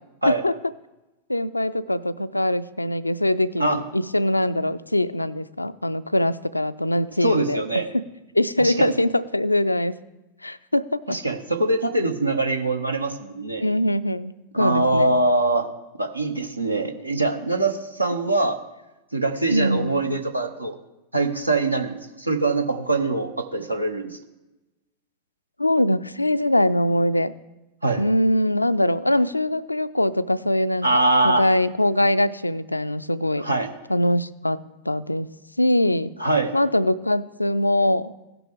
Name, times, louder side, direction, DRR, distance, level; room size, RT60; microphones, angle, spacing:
voice 1, 0.3-0.6 1.3-7.6 7.9-8.0 8.3-10.0 10.4-11.2 13.6-15.1 19.5-19.9 25.6-27.3 28.0-33.5 33.9-34.6 34.9-35.3 35.6-36.1 36.5-38.1, left 1 dB, 85° left, 15 dB, 0.3 m, -22 dB
voice 2, 7.2-7.9 8.6-8.9 11.1-13.6 14.5-15.7 16.0-18.6 19.1-20.8 21.1-24.2 27.8-28.0 30.8-31.5 33.4-33.7 36.2-36.5, right 2 dB, 85° right, 6 dB, 0.8 m, -23 dB
16.5 x 5.9 x 3.5 m, 1.0 s
figure-of-eight pair, 90°, 0 cm